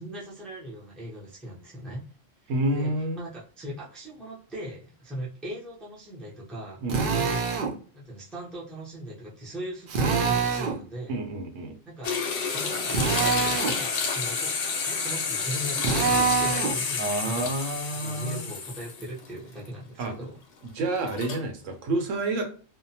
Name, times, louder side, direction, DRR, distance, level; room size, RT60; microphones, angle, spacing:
voice 1, 0.0-2.0 2.4-7.5 7.9-11.2 11.9-12.1 12.5-14.5 14.9-17.5 17.9-20.4, right 1 dB, ahead, -5 dB, 0.5 m, -39 dB
voice 2, 2.5-3.2 6.8-7.0 11.1-11.8 17.0-18.5 20.0-20.1 20.7-22.4, right 2 dB, 75° right, 4 dB, 1.0 m, -29 dB
Drill, 6.9-7.7 9.9-10.8 12.9-13.8 15.8-16.8, right 5 dB, 60° right, 0.5 m, -25 dB
sound 1, 12.0-19.3 19.7-19.8 21.0-21.4, left 5 dB, 70° left, 0.9 m, -30 dB
2.6 x 2.1 x 2.7 m, 0.39 s
omnidirectional pair, 1.3 m